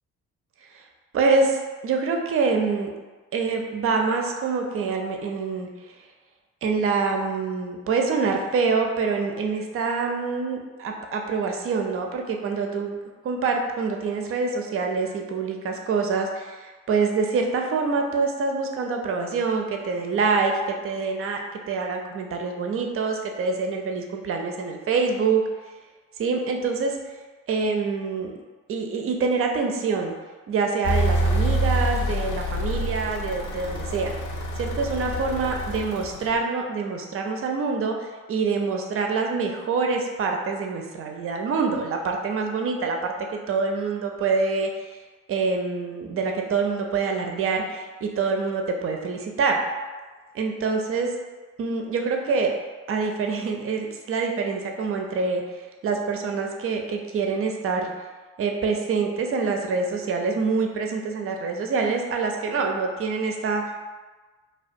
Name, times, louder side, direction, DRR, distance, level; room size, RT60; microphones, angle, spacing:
voice 1, 1.1-2.9 3.3-5.7 6.6-13.0 13.2-25.4 26.2-27.0 27.5-28.3 28.7-30.2 30.5-34.1 34.6-44.7 45.3-49.6 50.3-51.1 51.6-52.5 52.9-57.9 58.4-63.7, right 4 dB, 35° right, 2 dB, 0.4 m, -25 dB
sound 1, 30.8-36.4, equal, 50° left, 0.5 m, -26 dB
2.3 x 2.2 x 2.5 m, 1.3 s
hypercardioid pair, 45°, 39 cm